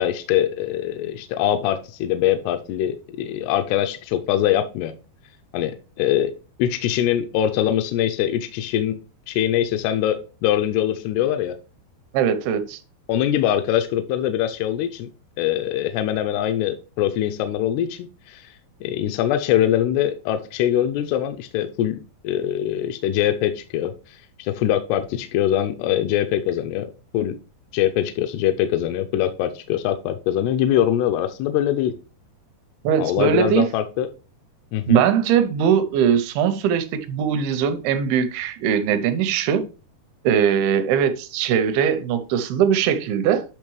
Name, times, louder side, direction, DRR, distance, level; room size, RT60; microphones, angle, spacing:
voice 1, 0.0-4.9 5.5-6.3 6.6-9.0 9.3-11.6 13.1-15.1 15.4-18.5 18.8-27.4 27.7-31.9 33.0-34.1 34.7-35.0, left 11 dB, 85° left, 2.6 m, -23 dB
voice 2, 12.1-12.8 32.8-33.7 34.9-39.7 40.2-43.4, right 8 dB, 75° right, 2.5 m, -20 dB
8.8 x 5.7 x 3.1 m
omnidirectional pair, 4.7 m